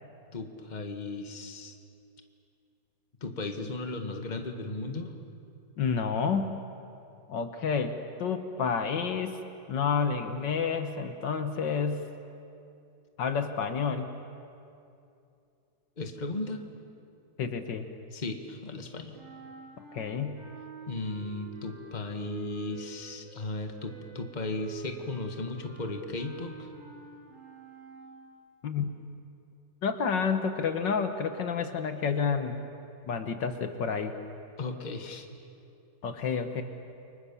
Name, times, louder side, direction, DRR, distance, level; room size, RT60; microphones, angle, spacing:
voice 1, 0.3-1.8 3.2-5.1 16.0-16.6 18.1-19.2 20.9-26.7 34.6-35.3, left 2 dB, 25° left, 5 dB, 1.7 m, -36 dB
voice 2, 5.8-6.5 7.3-9.4 9.7-12.1 13.2-14.1 17.4-17.9 19.9-20.4 28.6-28.9 29.8-32.6 33.1-34.2 36.0-36.6, left 6 dB, 70° left, 8 dB, 1.9 m, -29 dB
sound 1, 19.1-28.3, right 4 dB, 40° right, 8.5 m, -47 dB
29.0 x 24.5 x 7.1 m, 2.6 s
omnidirectional pair, 2.1 m